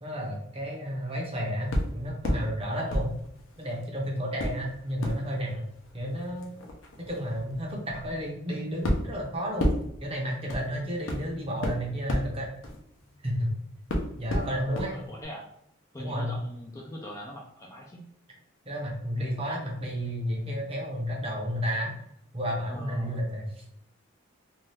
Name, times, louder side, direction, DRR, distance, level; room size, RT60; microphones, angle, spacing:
voice 1, 0.0-3.1 3.6-5.6 5.9-6.5 7.1-9.7 10.0-12.5 13.2-13.5 14.2-15.0 16.0-16.4 18.7-21.9 22.3-23.6, equal, 30° right, -1 dB, 0.7 m, -32 dB
sound 1, 1.7-2.5 2.9-3.9 4.4-13.5 13.9-14.9 15.2-15.3, equal, 70° left, 0.6 m, -32 dB
voice 2, 14.9-15.5 15.9-18.1 22.7-23.2, left 1 dB, 15° left, -2 dB, 0.3 m, -40 dB
2.7 x 2.3 x 3.2 m, 0.74 s
head